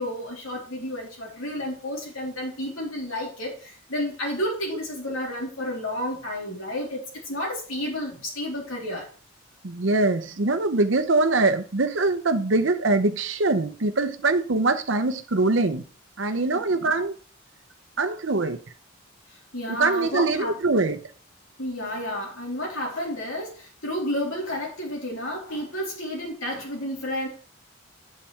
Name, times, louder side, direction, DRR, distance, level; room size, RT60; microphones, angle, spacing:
voice 1, 0.0-7.0 7.2-9.1 16.5-16.6 19.3-20.6 21.6-27.3, left 1 dB, 80° left, 3.4 m, -31 dB
voice 2, 9.6-15.8 16.2-17.1 18.0-18.6 19.8-21.0, right 3 dB, 65° right, 0.8 m, -23 dB
8.6 x 7.6 x 3.3 m
head